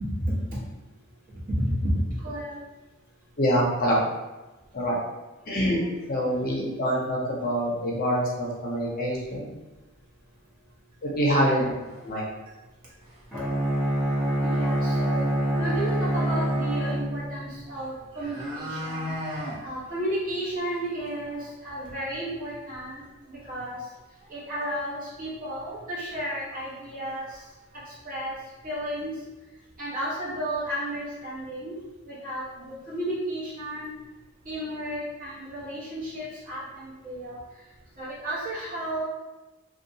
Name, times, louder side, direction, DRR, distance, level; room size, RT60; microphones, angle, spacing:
voice 1, 1.3-2.6 11.6-11.7 14.4-15.3 15.6-19.1 19.6-23.0 23.3-23.8 24.3-27.3 28.0-28.3 28.6-29.1 29.8-31.7 32.1-33.9 34.4-37.4 38.0-39.0, right 1 dB, 40° right, -8 dB, 1.0 m, -32 dB
voice 2, 3.4-4.0 4.7-5.0 5.5-9.5 11.0-11.6 12.0-12.2, equal, 40° left, -3 dB, 0.5 m, -25 dB
sound 1, 9.2-9.3 9.7-9.8 10.2-10.3 11.2-11.3 11.9-12.2 12.5-12.6 12.9-13.3 14.7-14.8 15.1-15.2 17.5-17.6 17.9-19.6 20.0-20.1 20.4-20.5 20.9-21.0 21.3-21.4 24.3-24.4 24.7-24.8 25.6-25.7 26.1-26.3 26.6-27.4 27.7-27.8, equal, 80° right, 1.2 m, -36 dB
Bowed string instrument, 13.3-17.5, right 1 dB, ahead, 0.7 m, -25 dB
2.7 x 2.2 x 2.6 m, 1.1 s
head